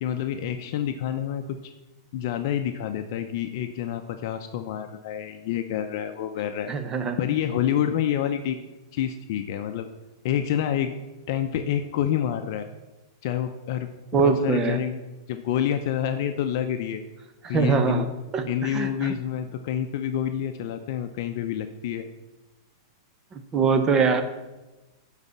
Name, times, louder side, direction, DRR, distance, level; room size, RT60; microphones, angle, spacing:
voice 1, 0.0-1.7 2.1-6.7 7.2-8.6 8.9-9.9 10.2-10.9 11.3-12.7 13.2-15.0 15.3-17.0 17.5-18.1 18.5-22.1, left 10 dB, 55° left, 7 dB, 0.6 m, -28 dB
voice 2, 6.7-7.2 14.1-14.8 17.4-18.1 18.3-19.1 23.5-24.2, right 5 dB, 20° right, 8 dB, 0.9 m, -23 dB
9.7 x 4.1 x 7.1 m, 1.1 s
supercardioid pair, 140°, 2 cm